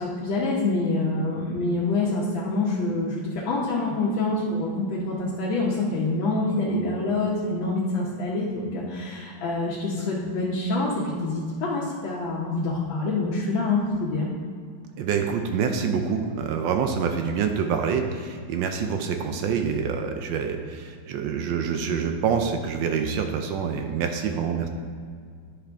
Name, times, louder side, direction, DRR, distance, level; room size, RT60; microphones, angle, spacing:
voice 1, 0.0-14.3, left 2 dB, 90° left, -5 dB, 1.7 m, -26 dB
voice 2, 15.0-24.7, right 6 dB, 80° right, 5 dB, 1.3 m, -26 dB
9.9 x 5.9 x 3.5 m, 2.1 s
omnidirectional pair, 2.0 m